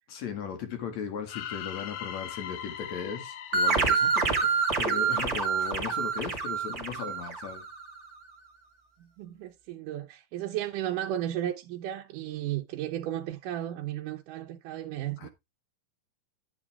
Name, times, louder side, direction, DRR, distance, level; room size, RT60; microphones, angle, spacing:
voice 1, 0.1-7.6 15.2-15.3, left 6 dB, 55° left, 3.0 m, -37 dB
sound 1, 1.3-5.3, left 10 dB, 90° left, 2.7 m, -41 dB
sound 2, 3.5-7.9, right 5 dB, 30° right, 1.6 m, -27 dB
voice 2, 9.0-15.3, right 12 dB, 75° right, 2.2 m, -34 dB
10.5 x 8.7 x 3.5 m
omnidirectional pair, 4.0 m